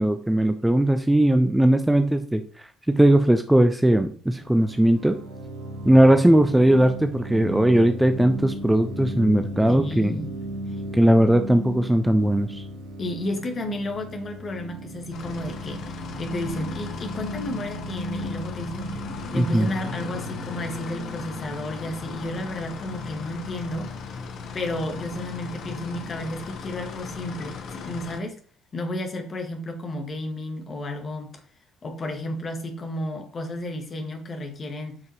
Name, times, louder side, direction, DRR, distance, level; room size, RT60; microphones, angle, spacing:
voice 1, 0.0-2.4 2.9-5.2 5.8-10.2 10.9-12.6 19.3-19.7, right 1 dB, 5° right, 0.6 m, -19 dB
sound 1, 4.3-21.9, right 1 dB, 70° right, 1.4 m, -36 dB
voice 2, 9.7-10.3 10.7-10.8 13.0-19.0 19.3-23.9 24.5-28.4 28.7-31.4 31.8-35.0, left 1 dB, 35° left, 1.8 m, -32 dB
sound 2, 15.1-28.2, left 5 dB, 50° left, 1.0 m, -37 dB
9.0 x 5.5 x 3.0 m
figure-of-eight pair, 50°, 0 cm